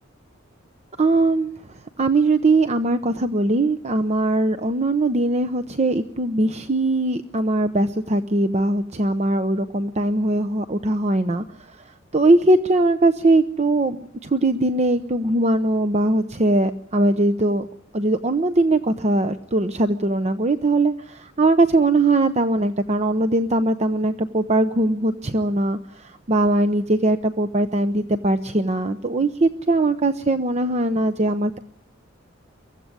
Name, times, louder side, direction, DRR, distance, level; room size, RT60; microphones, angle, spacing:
voice 1, 1.0-11.8 12.1-17.7 17.9-31.6, right 2 dB, 35° right, 10 dB, 0.8 m, -21 dB
24.0 x 15.0 x 9.7 m, 0.77 s
head